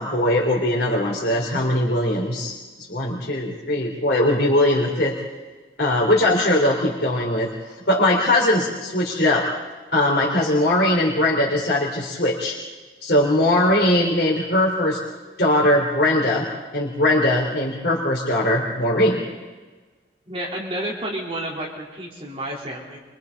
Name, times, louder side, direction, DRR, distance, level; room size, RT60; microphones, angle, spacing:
voice 1, 0.0-2.5 2.9-5.2 5.8-7.5 7.9-9.5 9.9-12.6 13.0-15.0 15.4-16.5 16.7-19.2, left 1 dB, 70° left, -3 dB, 3.7 m, -20 dB
voice 2, 20.3-23.0, right 1 dB, 30° right, -3 dB, 3.8 m, -30 dB
29.5 x 24.5 x 4.1 m, 1.3 s
head